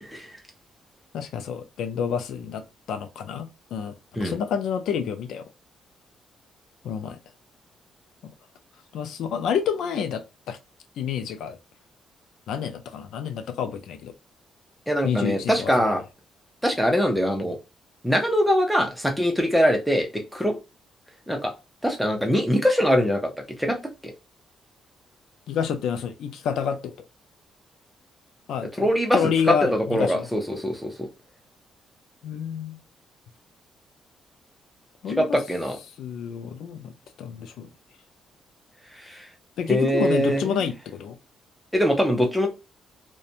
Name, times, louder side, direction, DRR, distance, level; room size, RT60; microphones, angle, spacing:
voice 1, 0.0-0.4 4.2-4.4 14.9-16.0 16.6-17.6 18.0-20.6 21.3-21.5 21.8-23.3 23.6-23.8 28.8-29.2 29.5-31.1 35.2-35.8 39.0-39.3 39.7-40.6 41.7-42.5, equal, ahead, 0.6 m, -22 dB
voice 2, 1.1-4.0 4.2-5.5 6.8-7.2 8.2-8.3 8.9-10.6 11.0-11.6 12.5-14.1 15.0-15.9 25.5-27.1 28.5-30.3 32.2-32.8 35.0-35.4 36.0-36.9 37.2-37.7 39.6-41.2, left 7 dB, 80° left, 0.3 m, -28 dB
2.4 x 2.1 x 2.7 m
cardioid pair, 130°, 0 cm